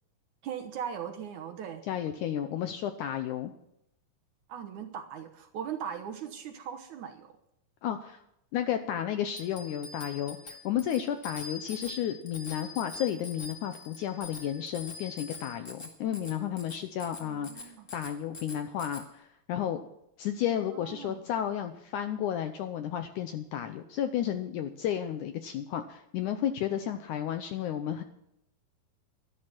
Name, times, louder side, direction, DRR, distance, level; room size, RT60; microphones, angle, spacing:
voice 1, 0.4-1.8 4.5-7.3 17.2-17.9 20.6-21.2, right 8 dB, 65° right, 5 dB, 2.2 m, -39 dB
voice 2, 1.9-3.5 7.8-8.2 8.5-19.8 20.2-28.0, left 10 dB, 80° left, 8 dB, 1.9 m, -32 dB
Bicycle bell, 9.3-19.0, left 3 dB, 25° left, 1.9 m, -44 dB
12.5 x 12.0 x 6.1 m, 0.78 s
omnidirectional pair, 4.2 m